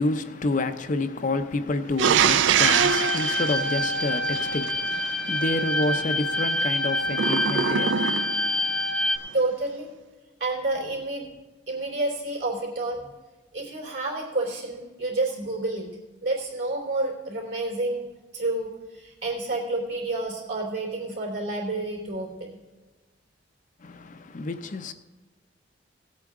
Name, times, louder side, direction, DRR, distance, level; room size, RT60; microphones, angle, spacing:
voice 1, 0.0-8.9 23.8-24.9, left 2 dB, 45° left, 0.6 m, -29 dB
sound 1, 2.0-4.7 7.1-8.5, right 7 dB, 90° right, 0.4 m, -23 dB
sound 2, 2.6-9.2, left 1 dB, 5° left, 0.9 m, -26 dB
voice 2, 9.1-9.9 10.4-11.3 11.7-13.0 13.5-15.9 16.2-18.1 18.3-22.5, right 2 dB, 70° right, 3.2 m, -29 dB
17.5 x 8.4 x 3.6 m
head